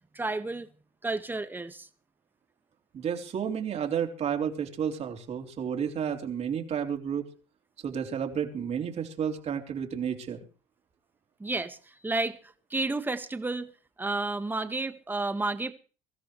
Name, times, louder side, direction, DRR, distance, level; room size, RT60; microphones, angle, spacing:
voice 1, 0.1-0.7 1.0-1.9 11.4-12.4 12.7-13.7 14.0-15.7, right 2 dB, 10° right, 1.7 m, -31 dB
voice 2, 2.9-7.3 7.8-10.4, right 8 dB, 45° right, 3.6 m, -31 dB
23.5 x 13.5 x 3.3 m
supercardioid pair, 105°, 15 cm